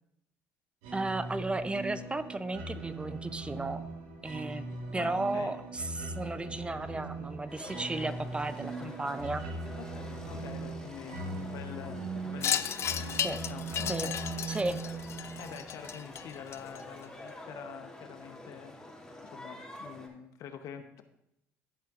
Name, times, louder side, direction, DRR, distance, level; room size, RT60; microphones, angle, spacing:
sound 1, 0.8-16.3, right 3 dB, 85° right, 1.5 m, -40 dB
voice 1, 0.9-3.9 4.2-4.7 4.9-9.4 13.1-13.4 13.9-14.1 14.5-14.8, right 2 dB, 15° right, 12 dB, 0.5 m, -34 dB
voice 2, 5.0-5.6 9.8-14.1 15.4-18.7 19.2-21.0, left 8 dB, 65° left, 8 dB, 0.9 m, -46 dB
sound 2, 7.5-20.1, left 1 dB, 10° left, 2.1 m, -48 dB
Wind chime, 12.4-17.0, left 9 dB, 50° left, 0.4 m, -34 dB
16.5 x 5.7 x 2.5 m, 0.78 s
supercardioid pair, 75°, 6 cm